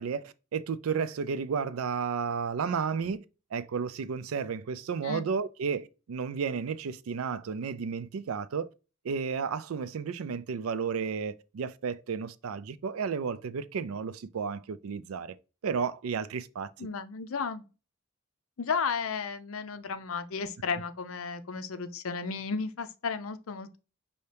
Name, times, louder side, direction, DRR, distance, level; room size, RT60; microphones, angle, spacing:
voice 1, 0.0-3.2 3.5-8.7 9.0-15.4 15.6-16.9, right 6 dB, 85° right, 0.4 m, -32 dB
voice 2, 16.8-17.6 18.6-23.8, left 5 dB, 80° left, 0.6 m, -33 dB
5.5 x 2.8 x 3.3 m
head